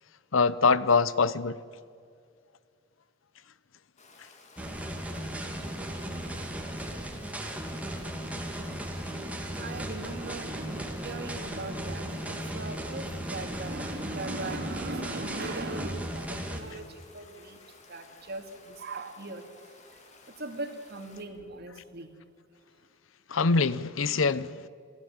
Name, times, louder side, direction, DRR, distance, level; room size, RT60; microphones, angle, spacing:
voice 1, 0.3-1.6 23.3-24.7, left 4 dB, 85° left, 0.8 m, -24 dB
Stream, 4.0-21.2, left 3 dB, 35° left, 2.8 m, -55 dB
sound 1, 4.6-16.6, right 1 dB, 5° right, 2.3 m, -36 dB
voice 2, 9.6-20.0 20.4-22.1, right 2 dB, 55° right, 2.3 m, -39 dB
28.0 x 15.5 x 8.8 m
head